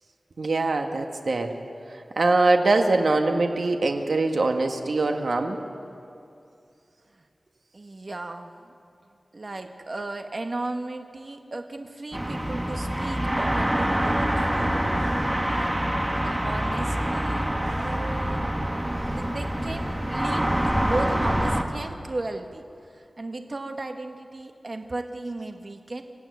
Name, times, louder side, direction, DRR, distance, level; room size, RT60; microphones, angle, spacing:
voice 1, 0.4-1.5 1.9-5.6, right 2 dB, 75° right, 4 dB, 1.5 m, -23 dB
voice 2, 7.7-8.7 9.3-14.8 15.4-17.5 17.8-18.5 19.1-26.0, right 2 dB, 45° right, 5 dB, 1.3 m, -35 dB
sound 1, 12.1-21.6, right 1 dB, 15° right, 1.8 m, -26 dB
26.0 x 15.0 x 9.5 m, 2.5 s
wide cardioid pair, 90°, 0 cm